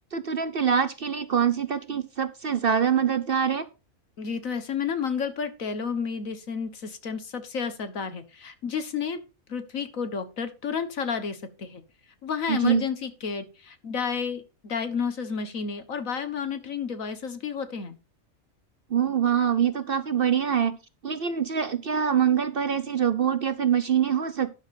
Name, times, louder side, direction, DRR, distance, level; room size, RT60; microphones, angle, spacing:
voice 1, 0.1-3.7 12.5-12.8 18.9-20.8 21.0-24.5, right 8 dB, 50° right, 13 dB, 0.8 m, -24 dB
voice 2, 4.2-9.2 9.5-11.8 12.2-18.0, left 6 dB, 70° left, 10 dB, 1.9 m, -31 dB
12.5 x 10.5 x 2.7 m, 0.30 s
omnidirectional pair, 1.5 m